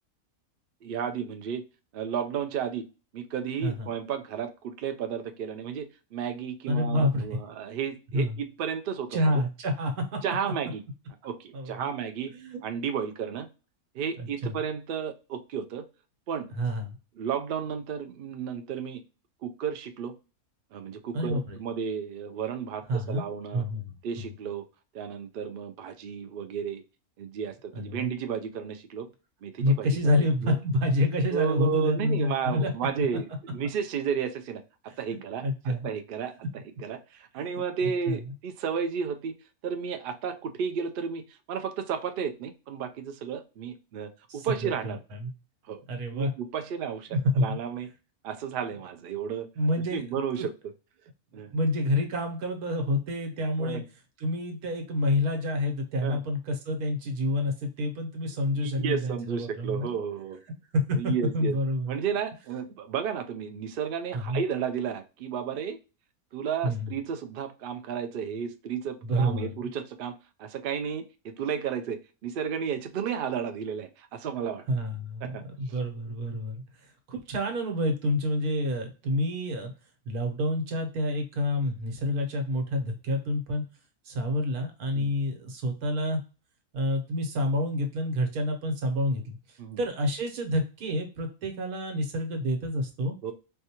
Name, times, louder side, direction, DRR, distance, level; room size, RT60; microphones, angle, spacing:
voice 1, 0.8-1.6 1.9-2.9 3.1-9.3 10.2-10.8 11.2-12.3 12.6-13.5 13.9-15.8 16.3-16.5 17.2-19.0 19.4-20.2 20.7-23.6 24.0-24.6 24.9-26.8 27.2-29.1 29.4-30.5 31.3-34.6 35.0-39.4 39.6-41.2 41.5-45.0 45.7-45.8 46.1-47.1 47.4-47.9 48.2-49.5 49.9-50.5 51.3-51.5 53.6-53.8 56.0-56.2 58.6-60.4 60.9-61.5 61.9-65.8 66.3-70.1 70.4-74.6 75.2-75.7 84.9-85.1 89.6-89.8 93.2-93.3, right 7 dB, 75° right, 8 dB, 0.5 m, -33 dB
voice 2, 6.7-7.4 8.1-8.4 9.1-10.2 10.4-10.5 11.5-11.8 12.3-12.6 14.2-14.6 16.6-17.0 21.1-21.6 22.9-23.3 23.5-23.9 27.7-28.1 29.6-32.7 33.0-33.1 35.1-35.9 37.8-38.2 44.3-45.3 45.9-46.3 47.1-47.6 49.6-50.5 51.5-53.8 54.2-60.0 60.9-61.9 64.1-64.4 66.6-66.9 69.0-69.7 74.7-76.6 77.1-79.7 80.1-83.6 84.0-86.2 86.7-93.1, left 1 dB, 90° right, 4 dB, 1.4 m, -28 dB
4.5 x 2.3 x 2.8 m, 0.32 s
omnidirectional pair, 1.5 m